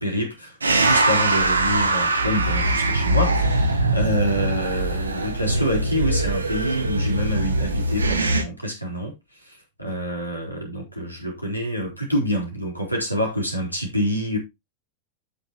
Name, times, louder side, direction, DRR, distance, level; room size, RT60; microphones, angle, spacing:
voice 1, 0.0-9.1 9.4-14.4, equal, 90° left, 4.2 m, -27 dB
sound 1, 0.6-8.4, right 2 dB, 75° right, 1.3 m, -22 dB
13.0 x 6.6 x 2.9 m
figure-of-eight pair, 90°, 0 cm